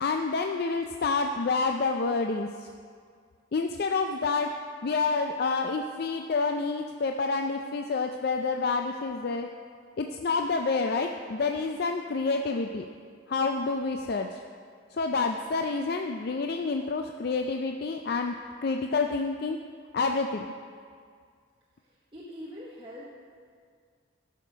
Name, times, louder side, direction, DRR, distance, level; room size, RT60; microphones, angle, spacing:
voice 1, 0.0-2.7 3.5-4.5 4.8-9.5 10.0-12.8 13.3-14.4 14.9-18.3 18.6-19.6 19.9-20.5, left 4 dB, 50° left, 4 dB, 0.4 m, -28 dB
voice 2, 21.8-23.1, equal, 25° right, -6 dB, 1.1 m, -43 dB
13.5 x 6.5 x 5.1 m, 2.1 s
head